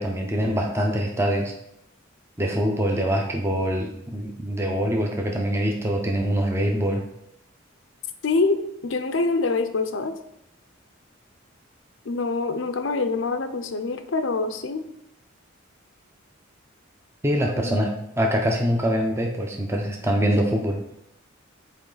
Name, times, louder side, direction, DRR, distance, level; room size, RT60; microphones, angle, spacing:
voice 1, 0.0-1.5 2.4-7.0 17.2-17.9 18.2-20.8, equal, 15° right, 1 dB, 0.6 m, -24 dB
voice 2, 8.2-10.2 12.0-14.8 17.6-17.8, left 3 dB, 65° left, 9 dB, 0.6 m, -25 dB
8.5 x 3.2 x 3.9 m, 0.79 s
head